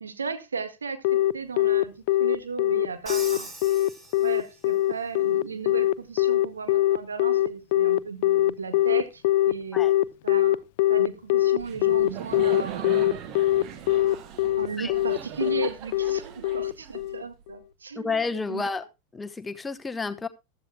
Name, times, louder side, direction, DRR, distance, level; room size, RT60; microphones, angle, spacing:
voice 1, 0.0-1.0 1.3-1.9 2.2-3.5 4.2-9.8 10.2-10.6 10.9-13.2 14.6-18.2 18.5-18.7, right 5 dB, 75° right, 1.8 m, -35 dB
Telephone, 1.0-17.2, left 14 dB, 50° left, 0.6 m, -22 dB
Crash cymbal, 3.1-4.8, right 1 dB, 15° right, 3.6 m, -41 dB
Laughter, 11.6-17.4, right 9 dB, 40° right, 1.6 m, -39 dB
voice 2, 17.9-18.9 19.1-20.3, left 4 dB, 10° left, 1.0 m, -30 dB
15.5 x 12.5 x 2.3 m
figure-of-eight pair, 90°, 0 cm